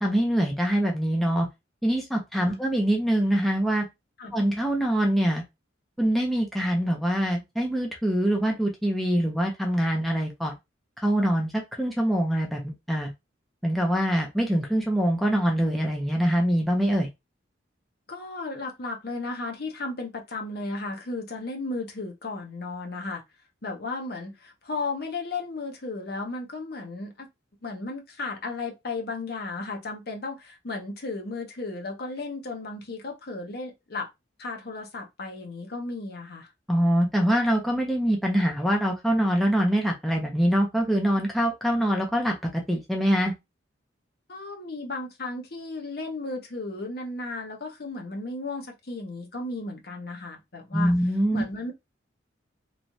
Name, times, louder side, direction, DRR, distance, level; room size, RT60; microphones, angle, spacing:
voice 1, 0.0-1.5 1.8-3.9 4.3-5.4 6.0-10.5 11.0-11.5 11.8-13.1 13.6-17.1 36.7-43.3 50.7-51.4, equal, ahead, 0.6 m, -24 dB
voice 2, 18.1-23.2 23.6-27.3 27.6-34.1 34.4-36.5 44.3-50.9 51.3-51.7, left 3 dB, 55° left, 0.8 m, -34 dB
3.1 x 2.4 x 2.7 m
head